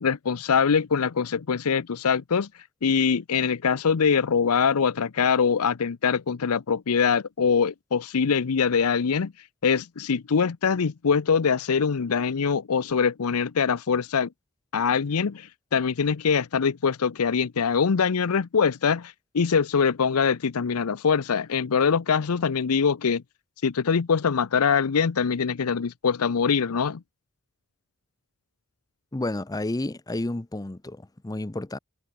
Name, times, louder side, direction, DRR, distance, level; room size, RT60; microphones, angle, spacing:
voice 1, 0.0-2.5 2.8-9.3 9.6-14.3 14.7-23.2 23.6-27.0, left 6 dB, 80° left, 0.6 m, -23 dB
voice 2, 29.1-31.8, left 2 dB, 15° left, 0.6 m, -31 dB
head